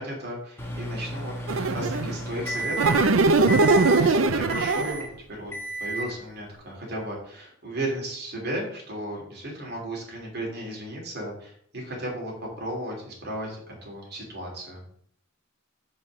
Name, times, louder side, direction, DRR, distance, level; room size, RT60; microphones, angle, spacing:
voice 1, 0.0-5.5 5.8-14.8, right 1 dB, 55° right, -2 dB, 3.2 m, -35 dB
Microwave oven, 0.6-3.1 3.5-4.0 4.5-5.1 5.5-6.1, right 1 dB, 10° left, 1.6 m, -33 dB
sound 1, 1.5-2.2 2.8-5.0, right 3 dB, 85° right, 0.6 m, -21 dB
5.8 x 5.5 x 6.4 m, 0.64 s
head